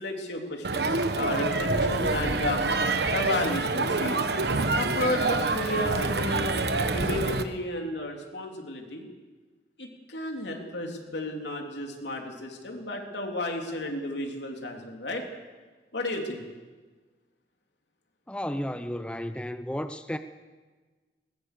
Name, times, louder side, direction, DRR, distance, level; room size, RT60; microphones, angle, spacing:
voice 1, 0.0-2.6 3.1-4.2 4.7-6.5 6.9-9.1 9.8-15.2 15.9-16.4, left 1 dB, 80° left, 2 dB, 3.4 m, -32 dB
Crowd, 0.6-7.4, right 3 dB, 65° right, 1.2 m, -26 dB
voice 2, 18.3-20.2, equal, 5° left, 9 dB, 0.6 m, -33 dB
21.0 x 20.5 x 6.9 m, 1.3 s
head